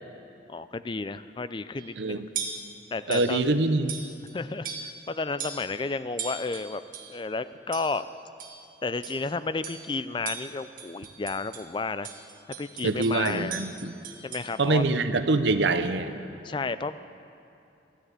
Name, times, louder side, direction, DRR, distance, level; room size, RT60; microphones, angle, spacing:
voice 1, 0.5-2.2 2.9-3.4 4.3-6.8 7.1-8.0 8.8-12.1 12.6-13.6 14.2-14.8 16.4-17.0, left 3 dB, 25° left, 13 dB, 0.3 m, -32 dB
sound 1, 1.8-2.0 2.4-2.7 3.1-3.4 3.9-4.3 4.6-5.1 5.4-5.7 6.2-7.2 7.7-8.0 8.4-8.7 9.0-9.3 9.6-9.9 10.3-11.7 12.0-14.5, right 6 dB, 45° right, 1.3 m, -39 dB
voice 2, 2.0-2.3 3.1-3.9 12.8-13.9 14.6-16.2, right 3 dB, 75° right, 10 dB, 0.7 m, -25 dB
13.0 x 9.9 x 8.9 m, 2.7 s
head